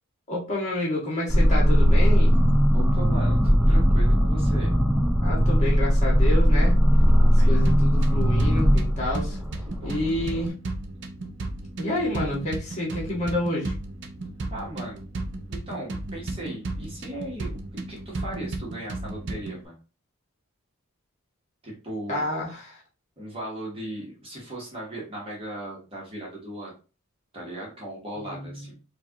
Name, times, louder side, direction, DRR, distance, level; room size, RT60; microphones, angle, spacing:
voice 1, 0.3-2.3 5.2-6.8 7.5-9.4 9.8-10.5 11.8-13.7 22.1-22.8 28.3-28.4, left 1 dB, 30° left, -4 dB, 1.6 m, -29 dB
sound 1, 1.3-10.5, equal, 5° right, 0.4 m, -19 dB
voice 2, 2.7-4.7 7.1-7.7 9.6-10.0 14.5-15.1 15.5-19.8 21.6-22.2 23.2-26.7 27.3-28.7, right 1 dB, 25° right, -4 dB, 1.1 m, -37 dB
sound 2, 7.6-19.6, right 2 dB, 55° right, 0.6 m, -34 dB
4.6 x 2.4 x 2.8 m, 0.34 s
head